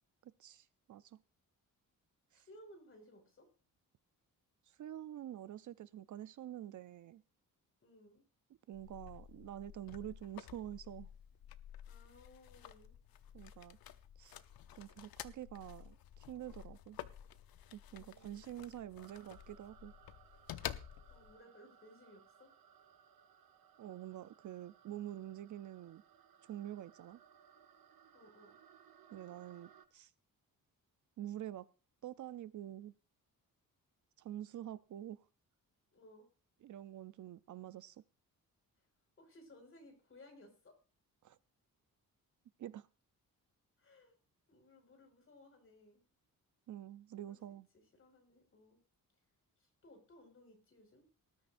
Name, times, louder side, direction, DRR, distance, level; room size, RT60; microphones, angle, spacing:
voice 1, 0.2-1.2 2.3-2.5 4.8-7.2 8.7-11.1 13.3-13.8 14.2-14.4 14.7-17.0 17.7-19.9 23.8-26.0 26.5-27.2 29.1-30.1 31.2-31.7 32.0-32.9 34.2-35.2 36.6-38.0 41.2-41.4 42.6-42.9 46.7-47.7, right 12 dB, 60° right, 0.5 m, -47 dB
voice 2, 2.3-3.5 7.8-8.2 11.9-12.9 17.9-18.9 21.1-22.5 28.1-28.6 35.9-36.3 38.8-38.9 39.2-40.7 43.8-44.1 44.5-46.0 47.3-47.4 47.9-48.8 49.6-51.1, left 1 dB, 40° left, 5.2 m, -61 dB
sound 1, 8.7-21.4, left 11 dB, 85° left, 0.8 m, -51 dB
sound 2, 19.0-29.9, right 8 dB, 80° right, 1.2 m, -64 dB
19.0 x 12.5 x 2.6 m
wide cardioid pair, 140°, 35 cm